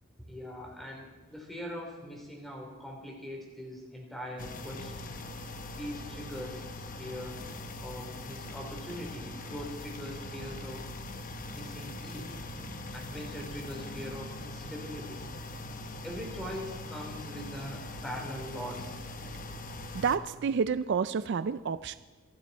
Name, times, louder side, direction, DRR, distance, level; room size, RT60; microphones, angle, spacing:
voice 1, 0.2-5.1 5.8-6.7 7.0-7.4 7.8-10.9 11.5-12.4 12.9-15.3 16.0-19.0, equal, ahead, -1 dB, 3.4 m, -42 dB
sound 1, 4.4-20.2, left 2 dB, 40° left, 1.0 m, -42 dB
voice 2, 20.0-22.0, right 6 dB, 55° right, 13 dB, 0.4 m, -29 dB
26.0 x 11.5 x 4.2 m, 1.3 s
head